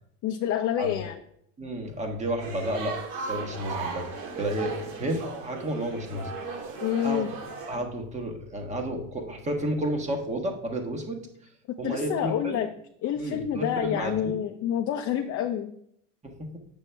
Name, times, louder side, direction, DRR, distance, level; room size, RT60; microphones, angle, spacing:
voice 1, 0.2-1.2 6.8-7.3 11.8-12.7 13.0-15.7, left 9 dB, 35° left, 5 dB, 0.6 m, -28 dB
voice 2, 1.6-3.0 3.3-4.1 4.3-6.3 6.6-7.3 7.7-11.2 11.8-12.6 13.2-14.4 16.2-16.6, right 1 dB, 15° right, 2 dB, 1.3 m, -31 dB
sound 1, 2.4-7.8, right 4 dB, 70° right, 2.5 m, -37 dB
8.8 x 7.2 x 3.4 m, 0.71 s
supercardioid pair, 135°, 42 cm